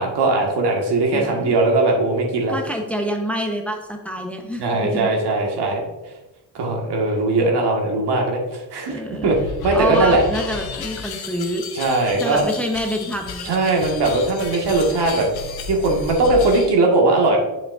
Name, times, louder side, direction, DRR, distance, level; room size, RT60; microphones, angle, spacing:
voice 1, 0.0-2.6 4.6-5.9 6.5-9.4 9.6-10.2 11.7-12.5 13.4-15.3 15.6-17.4, right 2 dB, 75° right, 0 dB, 1.7 m, -19 dB
voice 2, 1.1-1.6 2.5-5.1 8.9-9.4 9.7-11.6 12.2-13.5, equal, 5° left, 2 dB, 0.9 m, -27 dB
sound 1, 9.2-16.7, left 5 dB, 65° left, 0.9 m, -33 dB
7.2 x 6.7 x 2.5 m, 1.1 s
cardioid pair, 90°, 41 cm